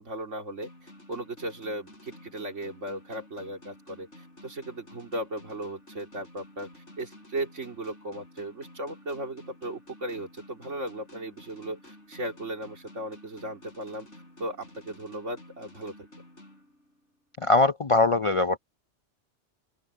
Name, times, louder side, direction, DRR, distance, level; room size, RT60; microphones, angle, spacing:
voice 1, 0.0-14.1 14.4-15.9, right 1 dB, 80° right, 3.4 m, -37 dB
sound 1, 0.6-17.2, left 1 dB, 70° left, 7.3 m, -51 dB
voice 2, 17.4-18.6, left 3 dB, 45° left, 0.4 m, -21 dB
open air
omnidirectional pair, 1.2 m